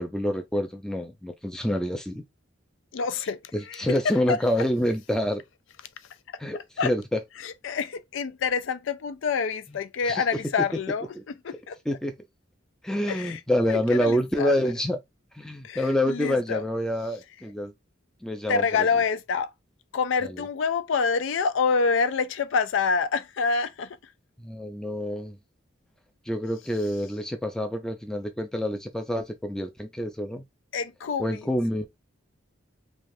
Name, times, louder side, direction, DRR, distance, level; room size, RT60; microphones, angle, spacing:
voice 1, 0.0-2.2 3.5-5.4 6.4-7.2 10.1-10.2 11.2-11.3 11.9-12.1 12.8-15.0 15.3-17.7 18.2-18.6 20.2-20.4 24.4-25.4 26.3-30.4 31.2-31.9, equal, 5° left, 0.4 m, -27 dB
voice 2, 2.9-3.4 3.7-4.4 6.8-6.9 7.4-11.1 11.4-11.8 13.1-13.4 13.7-14.5 15.6-16.6 18.5-19.5 19.9-24.0 30.7-31.5, left 5 dB, 75° left, 0.4 m, -27 dB
3.3 x 2.4 x 2.6 m
head